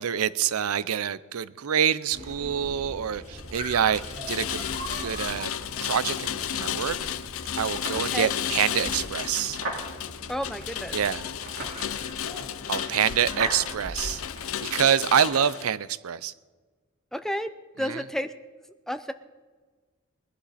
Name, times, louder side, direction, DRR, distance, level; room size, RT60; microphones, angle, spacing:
voice 1, 0.0-4.0 4.3-4.6 5.0-5.5 5.8-7.0 7.6-9.6 10.9-11.2 12.7-14.2 14.6-16.3, right 8 dB, 85° right, 17 dB, 0.5 m, -26 dB
sound 1, 2.1-14.4, right 1 dB, 30° right, 3.8 m, -41 dB
Rain, 3.3-15.7, left 10 dB, 70° left, 0.6 m, -33 dB
sound 2, 6.5-15.6, right 2 dB, 65° right, 3.9 m, -41 dB
voice 2, 10.3-11.0 13.4-13.5 17.1-17.5 17.8-18.3 18.9-19.1, equal, ahead, 10 dB, 0.5 m, -31 dB
21.5 x 11.5 x 4.2 m, 1.4 s
head